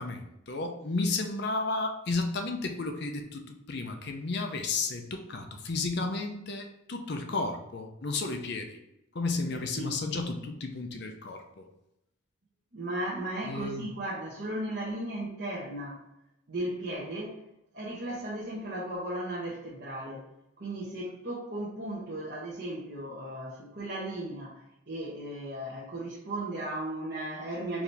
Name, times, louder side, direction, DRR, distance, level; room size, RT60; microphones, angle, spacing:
voice 1, 0.0-8.8 9.1-11.6 13.5-13.9, left 3 dB, 55° left, 5 dB, 0.6 m, -33 dB
voice 2, 9.5-10.1 12.7-16.0 16.5-17.4 17.7-20.2 20.6-27.8, right 1 dB, 50° right, -7 dB, 1.0 m, -36 dB
4.7 x 2.8 x 3.4 m, 0.86 s
head